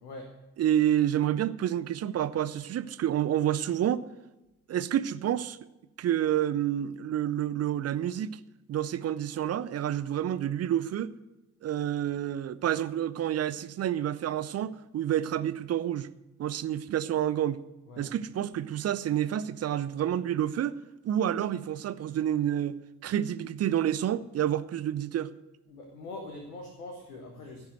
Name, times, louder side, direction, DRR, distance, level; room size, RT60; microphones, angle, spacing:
voice 1, 0.0-0.3 17.9-18.1 25.7-27.7, left 2 dB, 75° left, 1.5 m, -43 dB
voice 2, 0.6-4.0 4.7-5.6 6.0-8.4 8.7-11.1 11.6-16.1 16.4-17.6 18.0-20.8 21.0-25.3, right 11 dB, 35° right, 0.7 m, -29 dB
15.5 x 7.0 x 7.8 m
figure-of-eight pair, 50°, 46 cm